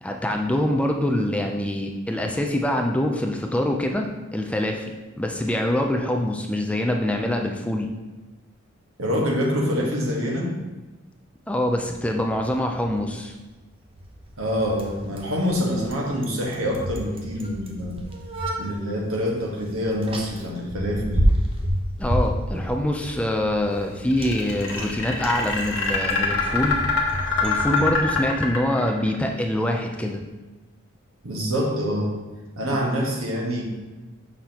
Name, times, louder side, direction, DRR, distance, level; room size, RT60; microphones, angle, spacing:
voice 1, 0.0-7.9 11.5-13.4 22.0-26.8 27.4-30.2, left 1 dB, 5° left, 2 dB, 0.4 m, -25 dB
voice 2, 9.0-10.5 14.4-18.0 18.6-21.2 31.2-32.2 32.6-33.6, equal, 85° right, -1 dB, 1.5 m, -25 dB
Bicycle, 11.6-27.9, equal, 25° right, 0.8 m, -30 dB
sound 1, 24.1-29.2, left 4 dB, 85° left, 1.2 m, -24 dB
6.6 x 5.8 x 2.9 m, 1.2 s
head